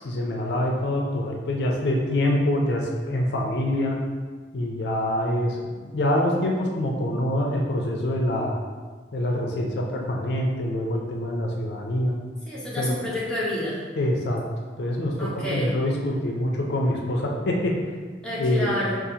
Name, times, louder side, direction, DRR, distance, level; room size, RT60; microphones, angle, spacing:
voice 1, 0.0-4.0 4.5-8.6 9.1-12.1 12.8-13.0 14.0-14.4 14.8-17.7 18.4-18.8, left 1 dB, 70° left, 0 dB, 0.4 m, -25 dB
voice 2, 12.5-13.8 15.2-15.7 18.2-19.0, left 1 dB, 5° left, -8 dB, 0.7 m, -29 dB
4.1 x 2.4 x 2.7 m, 1.5 s
head